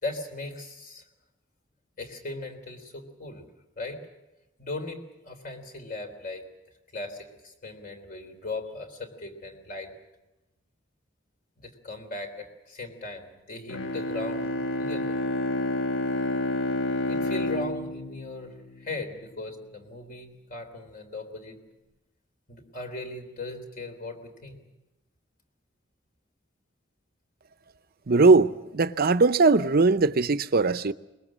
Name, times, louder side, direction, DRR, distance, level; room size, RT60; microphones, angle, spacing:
voice 1, 0.0-1.0 2.0-3.4 3.8-4.0 4.6-6.4 6.9-9.9 11.6-15.2 17.1-21.6 22.5-24.6, left 2 dB, 45° left, 3.5 m, -38 dB
Bowed string instrument, 13.7-19.2, left 1 dB, 80° left, 1.1 m, -29 dB
voice 2, 28.1-30.9, right 3 dB, 50° right, 0.7 m, -20 dB
22.0 x 21.0 x 7.4 m
head